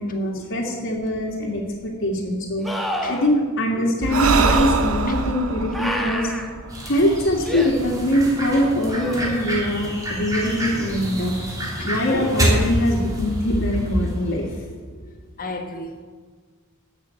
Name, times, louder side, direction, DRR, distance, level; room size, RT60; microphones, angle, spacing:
voice 1, 0.0-2.7 3.1-6.3 6.9-11.4 11.9-14.4, equal, 60° left, -3 dB, 1.9 m, -22 dB
sound 1, 1.0-1.1 2.6-3.3 4.4-4.7 5.7-6.5 7.4-7.7 8.9-9.6 12.7-12.8, equal, ahead, 1.2 m, -29 dB
Breathing, 4.0-7.6, right 4 dB, 70° right, 0.8 m, -24 dB
sound 2, 6.7-14.4, equal, 15° right, 3.3 m, -27 dB
voice 2, 15.4-16.0, left 2 dB, 40° left, 5 dB, 1.4 m, -33 dB
13.0 x 6.2 x 8.9 m, 1.5 s
head